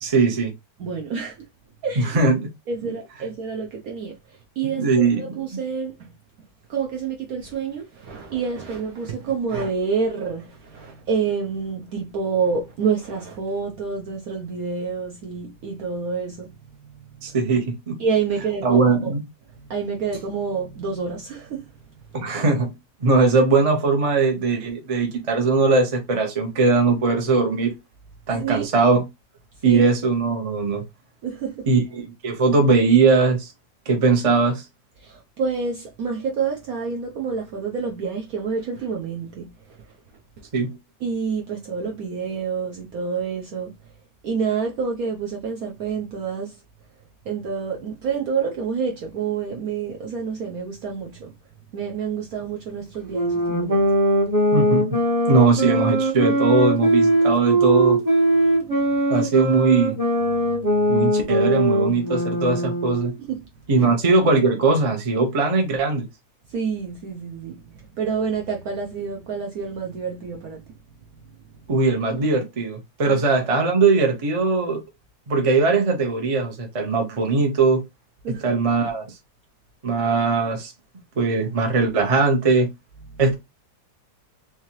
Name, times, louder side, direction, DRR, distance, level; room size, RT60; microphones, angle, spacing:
voice 1, 0.0-0.5 2.0-2.5 4.7-5.2 17.2-18.0 18.6-19.2 22.1-22.7 23.0-27.7 28.3-29.0 29.6-30.8 31.7-33.5 33.9-34.6 40.5-40.8 54.5-54.9 55.3-58.0 59.1-60.0 60.9-63.1 63.7-66.1 71.7-74.8 75.3-77.8 78.4-79.1 79.8-80.7 81.2-82.7 83.2-83.3, right 4 dB, 30° right, 0.6 m, -20 dB
voice 2, 0.8-1.5 1.8-2.2 2.7-6.1 6.7-17.4 18.0-19.1 19.5-22.3 28.3-28.7 29.6-29.8 31.2-31.7 35.0-39.9 41.0-43.9 44.2-46.6 47.2-51.3 51.7-53.9 58.6-59.0 63.2-63.9 66.5-70.8 71.1-71.6 73.1-73.2 78.2-78.5 83.1-83.2, right 5 dB, 65° right, 0.9 m, -28 dB
sound 1, 53.1-63.1, right 1 dB, 10° right, 1.0 m, -20 dB
3.7 x 3.1 x 2.9 m
omnidirectional pair, 2.1 m